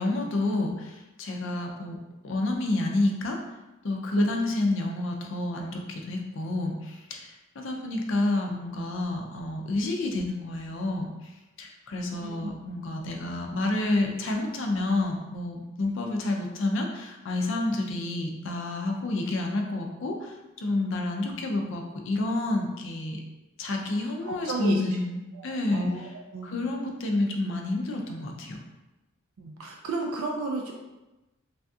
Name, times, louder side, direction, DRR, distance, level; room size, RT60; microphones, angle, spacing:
voice 1, 0.0-2.0 2.2-3.4 3.8-11.3 11.6-23.2 23.6-26.1 26.4-28.6, left 2 dB, 60° left, 2 dB, 0.4 m, -29 dB
voice 2, 12.2-12.5 24.2-25.0 25.3-26.5 29.4-30.7, right 3 dB, 75° right, 0 dB, 0.4 m, -33 dB
3.3 x 2.3 x 2.6 m, 1.0 s
head